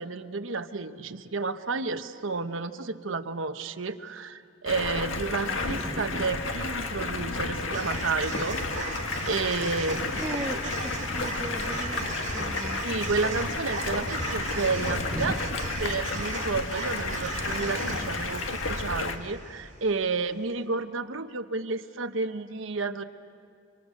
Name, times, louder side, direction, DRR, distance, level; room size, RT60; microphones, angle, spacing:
voice 1, 0.0-10.1 12.8-15.4 15.8-23.0, right 4 dB, 85° right, 8 dB, 1.0 m, -31 dB
Stream, 4.7-19.2, left 3 dB, 85° left, 1.6 m, -32 dB
voice 2, 5.5-6.3 8.3-8.4 9.6-9.7 10.1-12.8 15.1-15.4, right 1 dB, 15° right, 5 dB, 0.7 m, -37 dB
sound 1, 7.7-20.0, right 3 dB, 40° right, 5.0 m, -37 dB
30.0 x 25.0 x 6.5 m, 2.5 s
head